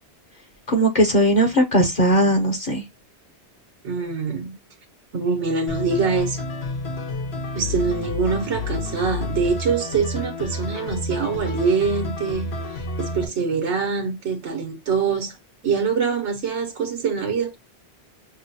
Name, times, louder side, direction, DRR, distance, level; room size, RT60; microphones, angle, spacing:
voice 1, 0.7-2.8, right 1 dB, 45° left, 0.8 m, -18 dB
voice 2, 3.8-4.5 5.1-6.4 7.5-15.4 15.6-17.5, right 5 dB, 85° right, 1.2 m, -24 dB
sound 1, 5.7-13.3, left 2 dB, 70° left, 1.4 m, -29 dB
6.1 x 2.2 x 2.6 m
omnidirectional pair, 1.1 m